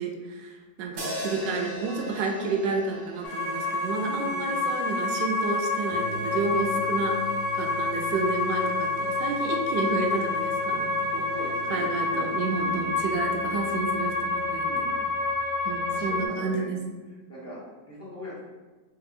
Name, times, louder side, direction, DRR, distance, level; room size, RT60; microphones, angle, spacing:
voice 1, 0.0-7.2 7.6-11.3 11.7-14.8 15.6-16.8, right 3 dB, 85° right, 2 dB, 1.2 m, -30 dB
sound 1, 1.0-5.2, right 1 dB, 70° right, 0.5 m, -39 dB
sound 2, 1.4-16.2, equal, 70° left, 1.2 m, -45 dB
sound 3, 3.2-16.3, left 3 dB, 85° left, 1.4 m, -28 dB
voice 2, 4.0-4.7 11.3-12.8 13.4-13.6 14.6-15.0 15.9-16.7 17.3-18.4, equal, 10° left, -8 dB, 0.8 m, -41 dB
3.6 x 3.3 x 2.5 m, 1.3 s
omnidirectional pair, 1.9 m